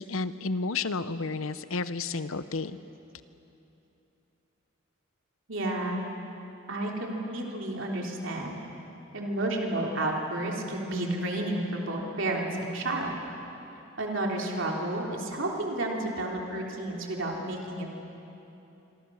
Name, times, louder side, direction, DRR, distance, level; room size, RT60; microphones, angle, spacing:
voice 1, 0.0-2.8, left 3 dB, 85° left, 13 dB, 0.8 m, -31 dB
voice 2, 5.5-6.0 6.7-8.6 9.1-13.2 14.0-17.9, right 1 dB, 65° right, -1 dB, 3.5 m, -31 dB
26.5 x 23.5 x 6.4 m, 2.9 s
head